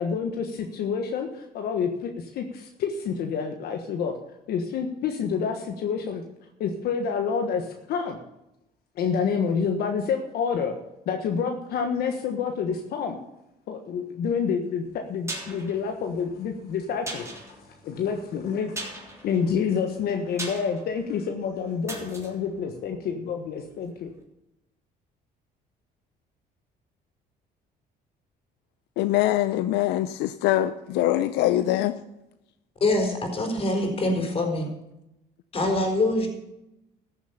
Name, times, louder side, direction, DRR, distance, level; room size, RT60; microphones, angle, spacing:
voice 1, 0.0-4.1 4.5-6.2 6.6-8.2 9.0-10.7 11.1-13.2 13.7-17.6 17.8-18.8 19.2-24.1, left 6 dB, 70° left, 1.3 m, -28 dB
sound 1, 14.9-23.7 24.0-24.1, right 1 dB, 15° right, 3.5 m, -41 dB
voice 2, 29.0-32.0, left 14 dB, 90° left, 0.6 m, -23 dB
voice 3, 32.8-34.7 35.5-36.3, left 2 dB, 35° left, 4.2 m, -24 dB
14.5 x 7.2 x 6.9 m
cardioid pair, 110°, 17 cm